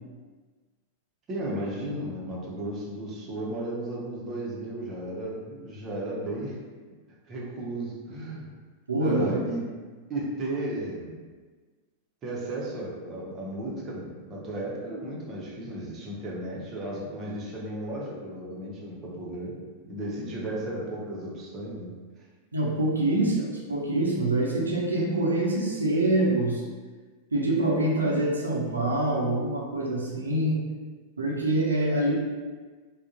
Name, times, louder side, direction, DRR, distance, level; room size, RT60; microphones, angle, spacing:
voice 1, 1.3-6.6 7.3-8.5 9.0-9.6 10.1-11.2 12.2-19.6 19.8-21.9 23.2-23.3, right 1 dB, 30° right, -4 dB, 0.7 m, -34 dB
voice 2, 8.9-9.3 22.5-26.6 27.3-30.6 31.2-32.1, right 1 dB, 75° right, -3 dB, 0.6 m, -25 dB
3.6 x 2.2 x 2.5 m, 1.4 s
figure-of-eight pair, 90°, 0 cm